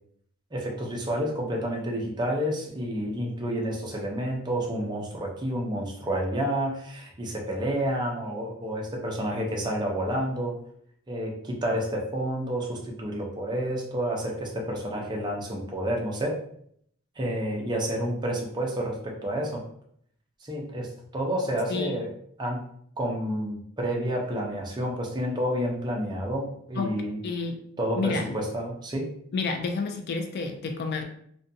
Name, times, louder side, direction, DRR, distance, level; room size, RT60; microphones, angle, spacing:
voice 1, 0.5-10.5 11.1-16.4 17.2-19.6 20.4-22.1 22.4-22.6 23.0-27.2 27.8-29.1, equal, 20° right, -1 dB, 0.5 m, -29 dB
voice 2, 21.7-22.0 26.7-26.9 27.2-27.6 27.9-28.4 29.3-31.0, left 4 dB, 45° left, 5 dB, 0.3 m, -29 dB
2.5 x 2.2 x 2.6 m, 0.67 s
head